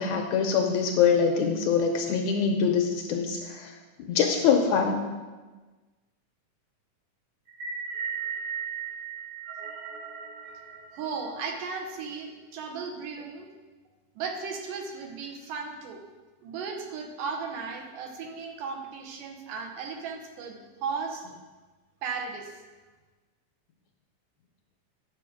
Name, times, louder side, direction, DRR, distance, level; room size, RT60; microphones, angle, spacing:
voice 1, 0.0-5.0, left 6 dB, 80° left, 3 dB, 1.7 m, -24 dB
sound 1, 7.5-11.8, right 6 dB, 65° right, 2.5 m, -37 dB
voice 2, 10.9-13.5 14.2-16.0 16.4-21.3 22.0-22.6, right 5 dB, 85° right, 3 dB, 2.6 m, -36 dB
9.2 x 6.6 x 4.9 m, 1.3 s
omnidirectional pair, 3.8 m